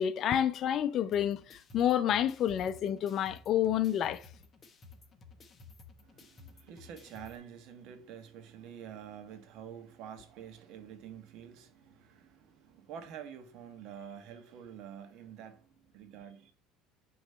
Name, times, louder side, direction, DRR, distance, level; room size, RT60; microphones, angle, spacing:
voice 1, 0.0-4.2, left 10 dB, 45° left, 0.6 m, -29 dB
sound 1, 1.1-7.4, left 4 dB, 30° left, 1.1 m, -55 dB
voice 2, 6.0-15.6 15.9-16.5, right 8 dB, 60° right, 1.3 m, -48 dB
8.3 x 3.1 x 5.5 m
supercardioid pair, 120°, 0 cm